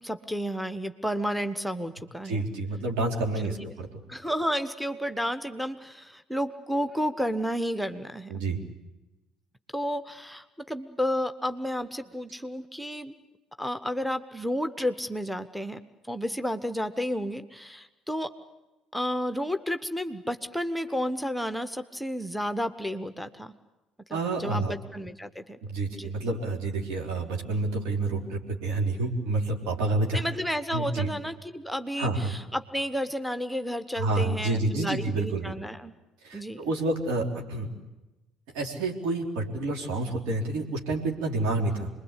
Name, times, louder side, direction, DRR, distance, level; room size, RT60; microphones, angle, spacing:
voice 1, 0.0-2.4 3.4-3.6 4.1-8.3 9.7-13.1 13.6-15.8 16.1-18.3 18.9-23.5 24.1-25.6 25.9-26.1 30.1-35.9 36.3-36.6, equal, ahead, 9 dB, 1.2 m, -31 dB
voice 2, 2.2-4.0 8.3-8.6 24.1-24.8 25.6-30.2 30.7-31.1 32.0-32.3 33.9-35.5 36.2-37.7 38.5-41.9, right 2 dB, 65° right, 1 dB, 3.8 m, -29 dB
27.0 x 21.5 x 8.4 m, 1.0 s
figure-of-eight pair, 55°, 0 cm